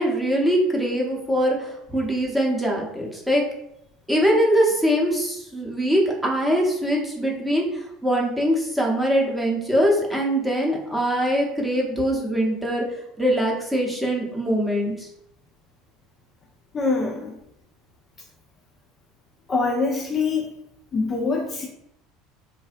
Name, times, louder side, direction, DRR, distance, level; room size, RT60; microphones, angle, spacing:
voice 1, 0.0-3.4 4.1-7.6 8.0-12.8 13.2-15.1, equal, 5° right, -2 dB, 0.7 m, -22 dB
voice 2, 16.7-17.3 19.5-20.5 20.9-21.7, left 4 dB, 30° left, 0 dB, 0.4 m, -24 dB
2.5 x 2.0 x 2.5 m, 0.79 s
figure-of-eight pair, 70°, 0 cm